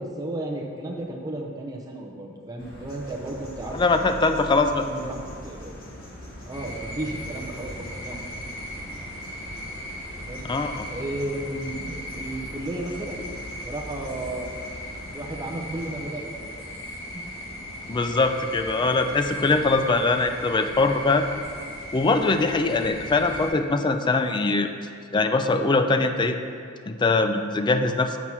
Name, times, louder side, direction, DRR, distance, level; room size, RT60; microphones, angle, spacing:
voice 1, 0.0-3.8 4.7-5.7 6.5-8.2 10.2-10.4 10.7-13.3 13.6-14.5 15.1-16.7, right 1 dB, 20° right, -1 dB, 0.6 m, -34 dB
sound 1, 2.6-16.0, equal, 45° left, 1.3 m, -42 dB
voice 2, 3.7-4.8 10.5-10.8 17.9-21.3 21.9-24.7 25.1-26.4 26.9-28.2, left 3 dB, 20° left, 7 dB, 0.3 m, -22 dB
sound 2, 6.5-23.5, left 1 dB, 75° left, 1.6 m, -38 dB
6.0 x 4.6 x 5.5 m, 2.3 s
head